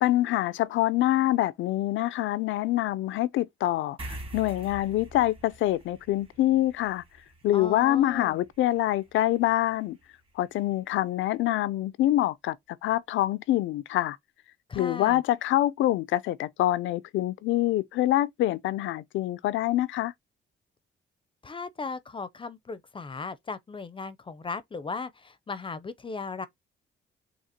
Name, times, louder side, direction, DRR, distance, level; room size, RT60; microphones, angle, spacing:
voice 1, 0.0-7.0 7.4-10.0 10.4-12.6 12.8-14.2 14.7-20.1, left 14 dB, 75° left, 0.5 m, -25 dB
sound 1, 4.0-10.8, right 1 dB, 30° right, 1.6 m, -46 dB
voice 2, 7.5-8.4 14.7-15.2 21.4-26.5, left 4 dB, 25° left, 0.5 m, -37 dB
6.5 x 2.9 x 2.8 m
cardioid pair, 90°, 20 cm